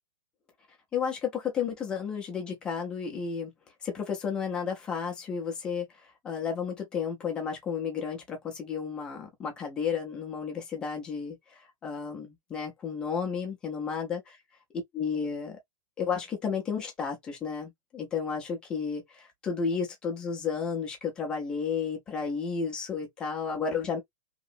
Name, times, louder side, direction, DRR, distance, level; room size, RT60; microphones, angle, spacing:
voice 1, 0.9-3.5 3.8-5.9 6.2-14.2 14.9-15.6 16.0-24.0, left 6 dB, 5° left, 0.3 m, -32 dB
2.8 x 2.6 x 2.5 m
hypercardioid pair, 180°, 17 cm